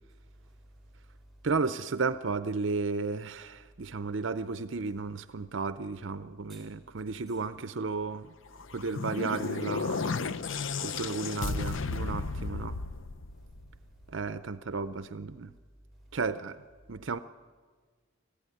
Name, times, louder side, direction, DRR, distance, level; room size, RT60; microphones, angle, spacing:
voice 1, 0.4-1.4 6.5-6.7 7.3-7.4 13.3-14.1 15.9-16.2, right 1 dB, ahead, 4.4 m, -56 dB
voice 2, 1.4-8.3 8.7-10.1 10.8-12.8 14.1-15.5 16.1-16.6 16.9-17.2, right 4 dB, 60° right, 0.6 m, -33 dB
sound 1, 8.6-13.9, left 4 dB, 65° left, 0.6 m, -34 dB
24.0 x 15.5 x 9.9 m
head